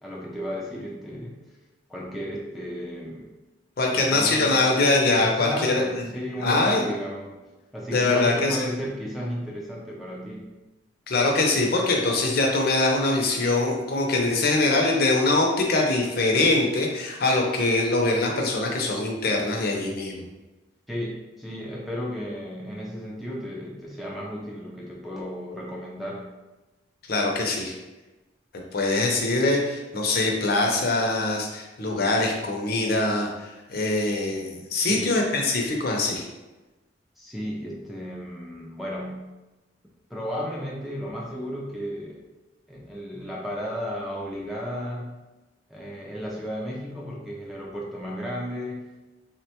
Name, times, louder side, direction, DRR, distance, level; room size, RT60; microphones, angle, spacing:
voice 1, 0.0-1.4 1.9-3.3 3.8-4.8 5.2-7.4 7.7-10.5 20.9-26.3 34.8-35.2 37.2-39.2 40.1-42.2 42.7-45.2 45.7-48.9, equal, ahead, -4 dB, 0.3 m, -34 dB
voice 2, 3.8-5.8 6.4-6.9 7.9-8.6 11.1-20.2 27.1-27.7 28.7-33.3 33.7-36.2, left 2 dB, 55° left, 0 dB, 0.5 m, -23 dB
3.6 x 2.2 x 2.8 m, 1.1 s
head